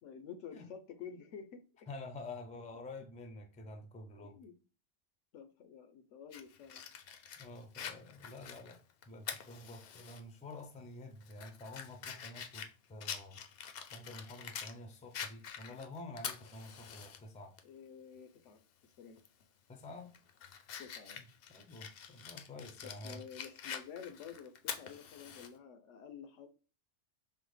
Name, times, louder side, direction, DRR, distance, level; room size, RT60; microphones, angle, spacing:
voice 1, 0.0-1.6 4.2-4.5 5.3-6.9 17.6-18.6 19.0-19.2 20.8-21.2 22.8-26.5, left 7 dB, 85° left, 1.0 m, -50 dB
voice 2, 1.9-4.4 7.4-8.8 9.1-13.4 13.9-17.5 19.7-20.1 21.2-21.3 21.5-23.2, left 2 dB, 10° left, 0.3 m, -49 dB
Fire, 6.3-10.2 10.6-10.7 11.2-14.8 15.1-17.2 17.6-17.7 19.2-19.4 19.9-25.5, left 7 dB, 65° left, 0.7 m, -46 dB
5.4 x 2.1 x 3.2 m
omnidirectional pair, 1.2 m